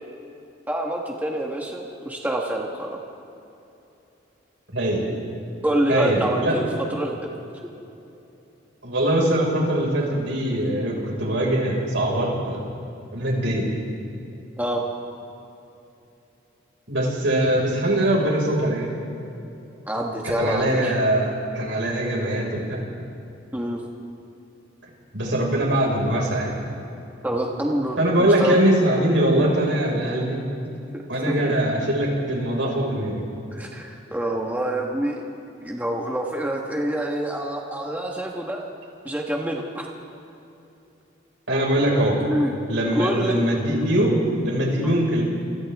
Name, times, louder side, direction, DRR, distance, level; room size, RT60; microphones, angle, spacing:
voice 1, 0.7-3.0 5.6-7.3 14.6-14.8 19.9-20.9 23.5-23.8 27.2-28.6 30.9-31.5 33.5-35.2 35.6-38.6 39.0-39.9 42.2-42.5 42.9-43.4, right 1 dB, 10° right, -1 dB, 1.5 m, -26 dB
voice 2, 4.7-5.1 5.9-6.6 8.8-12.6 13.1-13.7 16.9-18.9 20.4-22.8 25.1-26.5 28.0-30.4 31.1-33.2 41.5-42.2 42.7-45.2, right 1 dB, 75° right, -2 dB, 5.6 m, -22 dB
29.0 x 28.0 x 3.6 m, 2.9 s
head